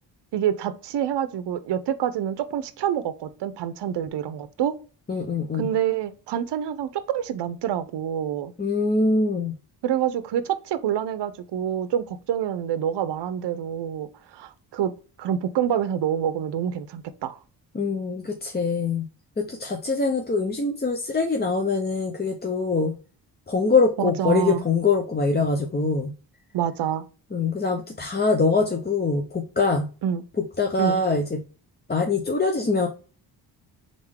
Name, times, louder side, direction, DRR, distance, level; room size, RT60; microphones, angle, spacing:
voice 1, 0.3-4.7 5.5-8.5 9.8-14.9 15.2-17.4 24.0-24.6 26.5-27.0 30.0-30.2 30.8-31.0, right 9 dB, 65° right, 0.6 m, -27 dB
voice 2, 5.1-5.7 8.6-9.5 17.7-19.1 19.4-22.9 23.5-26.1 27.3-29.9 30.6-31.4 31.9-32.9, left 3 dB, 20° left, 0.7 m, -23 dB
3.7 x 3.6 x 3.4 m
cardioid pair, 65°, 44 cm